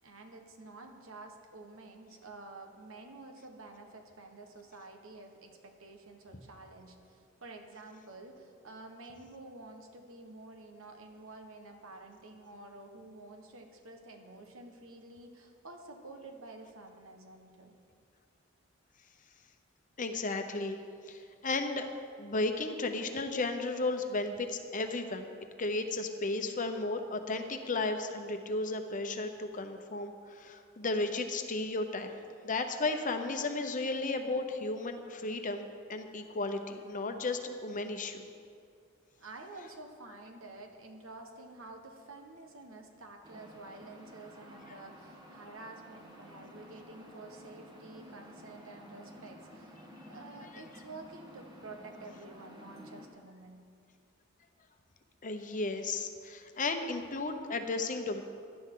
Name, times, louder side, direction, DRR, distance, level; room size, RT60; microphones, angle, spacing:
voice 1, 0.0-17.7 39.2-49.7 50.1-53.6, right 2 dB, 80° right, 3 dB, 1.4 m, -50 dB
voice 2, 20.0-20.8 21.1-21.9 22.2-25.3 25.6-35.6 35.9-38.3 55.2-58.2, left 3 dB, 40° left, 6 dB, 0.9 m, -34 dB
sound 1, 43.2-53.1, equal, 20° right, 1.4 m, -52 dB
17.0 x 11.5 x 3.9 m, 2.3 s
head